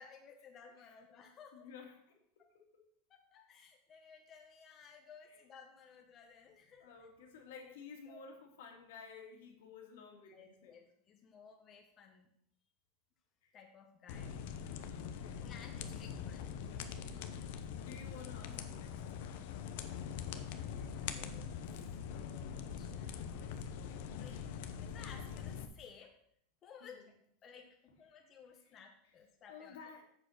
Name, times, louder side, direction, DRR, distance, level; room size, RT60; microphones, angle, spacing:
voice 1, 0.0-1.7 2.4-2.5 3.1-6.9 8.1-8.2 10.3-12.3 13.5-14.4 15.4-16.7 20.4-24.5 24.8-26.1 26.6-27.0 27.4-29.9, left 6 dB, 20° left, 3 dB, 0.9 m, -57 dB
voice 2, 1.5-2.9 5.2-5.4 6.8-10.8 13.4-13.5 14.8-15.4 17.0-19.5 26.8-27.1 29.5-30.0, left 5 dB, 75° left, 3 dB, 2.2 m, -54 dB
sound 1, 14.1-25.7, left 7 dB, 55° left, 0.8 m, -43 dB
7.6 x 6.8 x 6.4 m, 0.68 s
supercardioid pair, 180°, 0 cm